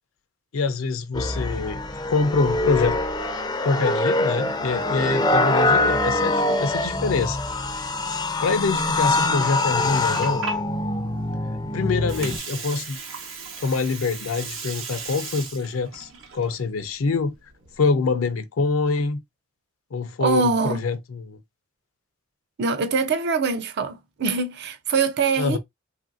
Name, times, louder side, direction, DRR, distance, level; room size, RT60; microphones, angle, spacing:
voice 1, 0.5-1.8 2.1-3.0 3.6-7.4 8.4-10.4 11.7-13.0 13.6-17.3 17.8-19.2 19.9-21.4 25.4-25.6, left 4 dB, 80° left, 0.5 m, -25 dB
sound 1, 1.1-12.4, left 2 dB, 20° left, 0.4 m, -24 dB
Water, 9.8-17.8, right 5 dB, 70° right, 0.8 m, -37 dB
voice 2, 20.2-20.8 22.6-25.6, right 4 dB, 55° right, 0.4 m, -23 dB
3.0 x 2.5 x 2.4 m
head